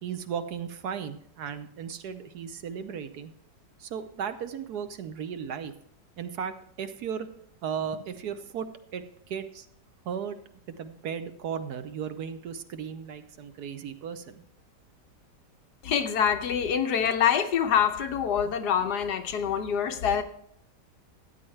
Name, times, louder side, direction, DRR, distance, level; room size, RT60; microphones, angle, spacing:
voice 1, 0.0-3.3 3.8-5.7 6.2-7.3 7.6-9.7 10.0-10.4 10.7-14.4, right 7 dB, 70° right, 1.2 m, -36 dB
voice 2, 15.8-20.2, left 8 dB, 70° left, 1.3 m, -25 dB
13.5 x 9.4 x 3.2 m
omnidirectional pair, 1.9 m